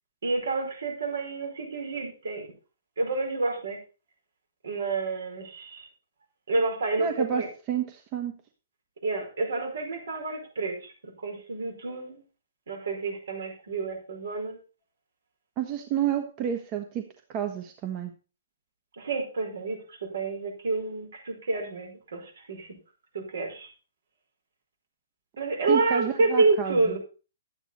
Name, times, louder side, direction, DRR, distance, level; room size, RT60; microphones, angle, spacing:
voice 1, 0.2-2.5 3.0-3.8 4.6-5.9 6.5-7.5 9.0-12.2 12.7-14.6 19.0-22.7 23.1-23.7 25.4-27.0, right 3 dB, 75° right, 2 dB, 5.3 m, -29 dB
voice 2, 7.0-8.4 15.6-18.1 25.7-27.0, right 9 dB, 30° right, 5 dB, 1.3 m, -30 dB
11.5 x 9.0 x 4.1 m, 0.34 s
hypercardioid pair, 135°, 0 cm